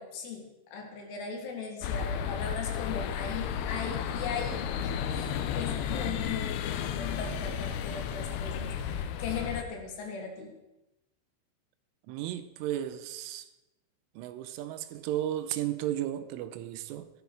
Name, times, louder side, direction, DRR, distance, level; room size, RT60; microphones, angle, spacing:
voice 1, 0.0-10.5, left 5 dB, 65° left, 3.7 m, -39 dB
sound 1, 1.8-9.6, left 8 dB, 80° left, 2.3 m, -33 dB
voice 2, 12.1-13.5 14.2-17.1, right 12 dB, 85° right, 3.2 m, -34 dB
15.5 x 13.0 x 4.7 m
omnidirectional pair, 5.6 m